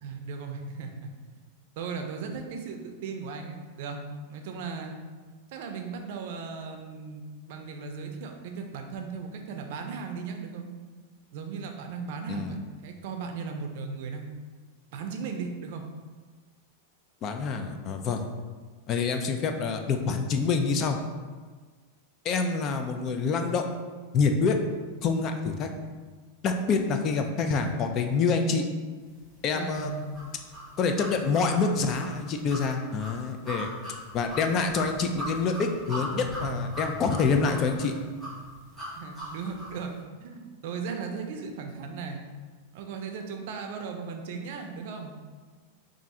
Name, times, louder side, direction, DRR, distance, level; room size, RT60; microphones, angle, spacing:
voice 1, 0.0-0.9 1.8-4.9 5.5-7.2 7.5-10.7 11.3-14.3 14.9-15.8 29.5-30.2 38.9-39.9 40.2-42.2 42.7-45.1, right 5 dB, 55° right, 4 dB, 0.5 m, -37 dB
voice 2, 17.2-18.2 18.9-21.0 22.2-23.7 24.1-24.6 25.0-25.7 26.4-28.6 29.4-29.9 30.8-33.7 34.1-38.0, left 4 dB, 30° left, 5 dB, 0.3 m, -26 dB
sound 1, 29.7-39.8, equal, ahead, 1.3 m, -38 dB
3.6 x 2.5 x 4.2 m, 1.4 s
supercardioid pair, 160°, 0 cm